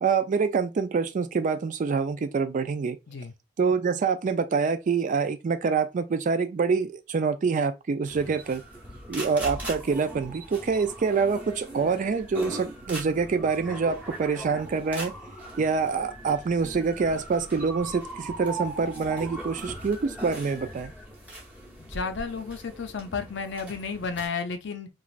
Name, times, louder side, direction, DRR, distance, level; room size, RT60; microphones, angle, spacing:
voice 1, 0.0-3.0 3.6-8.6 9.1-15.1 15.6-20.9, right 5 dB, 40° right, 0.3 m, -26 dB
sound 1, 8.1-24.3, right 1 dB, 10° right, 0.8 m, -40 dB
voice 2, 21.8-24.9, left 5 dB, 65° left, 0.5 m, -32 dB
3.1 x 2.4 x 2.4 m
head